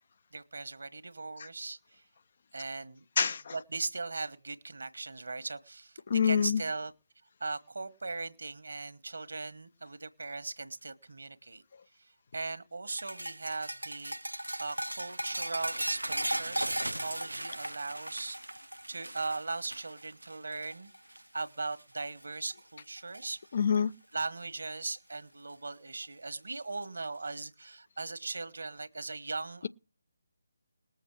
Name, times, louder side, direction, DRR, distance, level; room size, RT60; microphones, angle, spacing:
voice 1, 0.3-2.0 2.5-3.0 3.5-6.9 7.4-11.6 12.0-20.9 21.3-23.4 24.1-29.7, right 3 dB, 65° right, 1.4 m, -39 dB
voice 2, 3.2-3.5 6.1-6.6 23.5-23.9, left 7 dB, 45° left, 0.5 m, -26 dB
sound 1, 12.9-21.4 21.7-22.1 22.5-23.3 24.7-24.8 26.0-26.1, right 1 dB, 80° right, 0.6 m, -37 dB
20.0 x 7.2 x 4.7 m
figure-of-eight pair, 150°, 0 cm